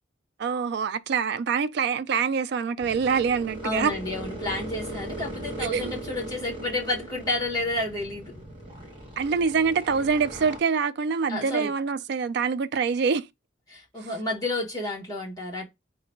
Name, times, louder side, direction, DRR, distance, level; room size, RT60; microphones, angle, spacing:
voice 1, 0.4-3.9 5.6-5.9 9.2-13.3, right 5 dB, 60° right, 0.3 m, -25 dB
sound 1, 2.8-10.6, right 1 dB, 30° right, 1.2 m, -39 dB
voice 2, 3.6-8.3 11.3-11.7 13.7-15.6, left 2 dB, 20° left, 1.3 m, -30 dB
3.8 x 2.1 x 4.4 m
head